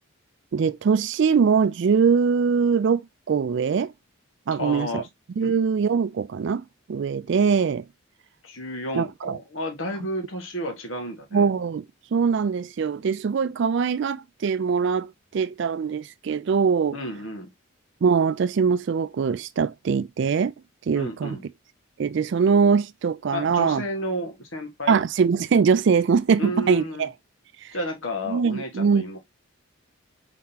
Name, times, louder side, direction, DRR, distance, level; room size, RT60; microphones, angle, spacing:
voice 1, 0.5-3.0 3.3-3.9 4.5-5.0 5.4-6.6 6.9-7.8 8.9-9.4 11.3-11.8 12.1-17.0 18.0-20.5 20.9-21.4 22.0-23.8 24.9-27.1 27.6-27.7 28.3-29.1, right 6 dB, 60° right, 0.3 m, -22 dB
voice 2, 4.6-5.1 5.4-5.6 8.4-11.5 16.9-17.5 20.9-21.4 23.3-25.0 26.4-27.1 27.7-29.2, equal, 70° left, 1.5 m, -32 dB
4.8 x 3.7 x 2.8 m
head